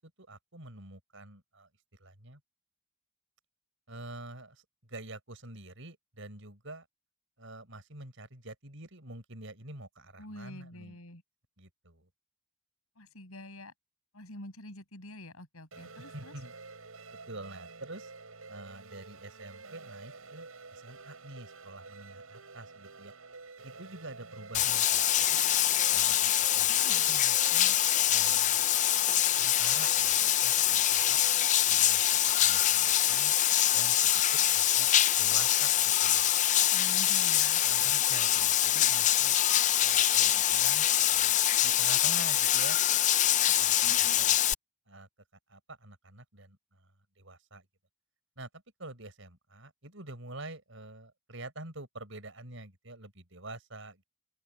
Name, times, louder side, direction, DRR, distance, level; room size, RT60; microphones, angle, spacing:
voice 1, 0.0-2.4 3.9-6.9 7.4-11.0 11.6-12.1 15.9-16.5 17.3-18.1 18.5-23.1 23.6-25.4 25.9-27.7 28.1-28.7 29.4-31.2 31.6-32.0 32.3-33.3 33.7-34.2 34.5-36.3 37.6-39.4 39.8-42.8 43.5-44.4 44.9-45.1 45.5-46.9 47.2-47.7 48.4-54.0, right 2 dB, 65° right, 6.6 m, -47 dB
voice 2, 10.2-11.2 13.0-13.7 14.1-16.3 26.7-27.2 36.7-37.6 43.8-44.2, left 1 dB, 85° left, 6.7 m, -46 dB
sound 1, 15.7-31.4, right 4 dB, 85° right, 6.6 m, -49 dB
Bathtub (filling or washing), 24.5-44.5, left 12 dB, 35° left, 0.5 m, -25 dB
open air
head